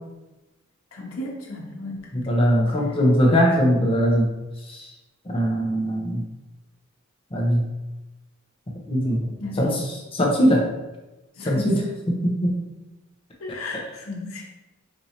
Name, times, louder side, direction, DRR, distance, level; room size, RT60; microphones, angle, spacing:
voice 1, 0.9-2.4 9.4-9.8 11.4-11.8 13.4-14.5, left 2 dB, 85° left, -1 dB, 0.8 m, -34 dB
voice 2, 2.1-4.3 4.7-4.9 5.2-6.2 7.3-7.7 8.9-9.3 9.6-9.8 10.1-10.7 11.4-12.6, equal, 25° left, -1 dB, 0.7 m, -21 dB
4.3 x 2.6 x 2.8 m, 1.1 s
head